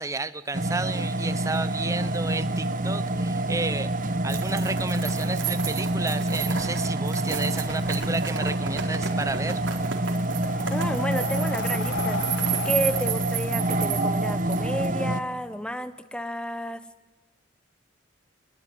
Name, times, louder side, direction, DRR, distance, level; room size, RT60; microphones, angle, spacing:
voice 1, 0.0-9.6, right 3 dB, 15° right, 13 dB, 0.8 m, -32 dB
sound 1, 0.5-15.2, right 1 dB, 45° right, 1.2 m, -27 dB
sound 2, 4.3-14.9, right 8 dB, 85° right, 4.1 m, -33 dB
Breathing, 10.0-14.4, left 6 dB, 65° left, 0.8 m, -36 dB
voice 2, 10.7-12.2 12.6-16.8, equal, 5° left, 11 dB, 1.1 m, -31 dB
23.5 x 22.5 x 9.5 m, 1.2 s
head